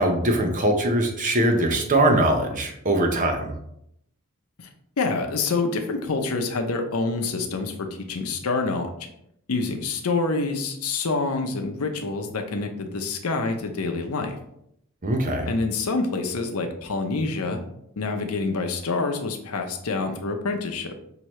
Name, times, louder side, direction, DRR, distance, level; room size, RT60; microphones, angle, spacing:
voice 1, 0.0-3.5 15.0-15.5, right 1 dB, 35° right, 4 dB, 0.7 m, -22 dB
voice 2, 5.0-8.9 9.5-14.4 15.5-17.6 18.0-21.0, left 3 dB, 85° left, 4 dB, 0.7 m, -27 dB
5.9 x 2.7 x 3.1 m, 0.75 s
head